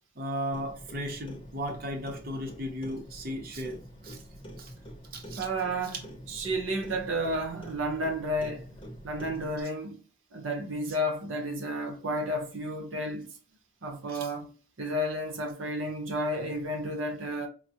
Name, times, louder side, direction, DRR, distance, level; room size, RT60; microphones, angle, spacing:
voice 1, 0.2-3.8 4.0-4.2 4.6-4.7 5.1-5.5 14.1-14.3, equal, 50° right, 0.7 m, -35 dB
Clock, 0.5-9.6, equal, 25° left, 0.8 m, -46 dB
voice 2, 5.4-8.7 9.0-10.0 10.3-13.3 13.8-14.5 14.8-17.5, equal, 80° right, 0.9 m, -32 dB
4.8 x 2.1 x 2.8 m
head